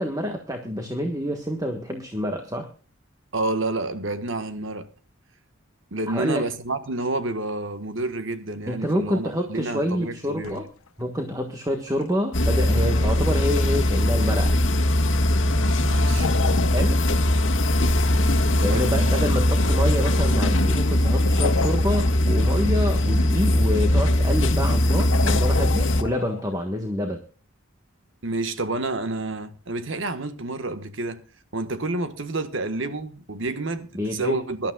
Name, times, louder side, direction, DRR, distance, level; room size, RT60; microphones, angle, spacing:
voice 1, 0.0-2.7 6.1-6.4 8.7-10.7 11.0-14.6 16.7-17.0 18.6-27.2 33.9-34.4, equal, 15° right, 1.4 m, -27 dB
voice 2, 3.3-4.9 5.9-10.6 15.8-16.3 18.7-19.1 28.2-31.2 31.5-34.7, right 2 dB, 65° right, 1.4 m, -29 dB
sound 1, 8.9-9.0 10.4-11.2 11.9-12.1 15.8-17.4 17.7-17.8 18.3-18.4 21.0-22.5 24.1-24.3 25.0-26.6, left 5 dB, 85° left, 0.8 m, -32 dB
sound 2, 12.3-26.0, left 1 dB, 60° left, 1.6 m, -20 dB
23.5 x 12.0 x 2.3 m
head